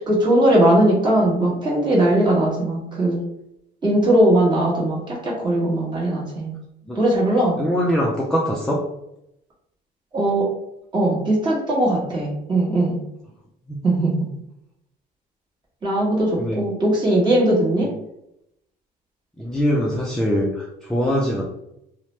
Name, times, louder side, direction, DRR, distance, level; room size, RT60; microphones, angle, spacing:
voice 1, 0.1-3.2 3.8-6.5 6.9-7.6 10.1-10.5 10.9-13.0 13.8-14.3 15.8-17.9, right 1 dB, 25° right, -5 dB, 1.2 m, -19 dB
voice 2, 7.6-8.8 13.7-13.8 16.4-16.6 19.4-21.4, equal, 5° left, -3 dB, 0.4 m, -22 dB
2.8 x 2.0 x 3.1 m, 0.83 s
cardioid pair, 110°, 17 cm